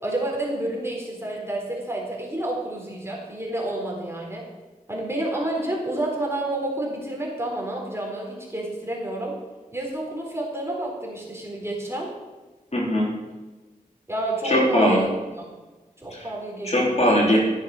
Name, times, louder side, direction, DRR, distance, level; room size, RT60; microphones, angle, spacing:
voice 1, 0.0-4.4 4.9-9.3 9.7-12.1 14.1-15.1 16.0-16.9, right 1 dB, 15° right, -2 dB, 3.8 m, -29 dB
voice 2, 12.7-13.1 14.4-15.0 16.1-16.3 16.6-17.4, equal, 45° left, -3 dB, 3.4 m, -20 dB
14.5 x 7.1 x 6.3 m, 1.2 s
wide cardioid pair, 65°, 15 cm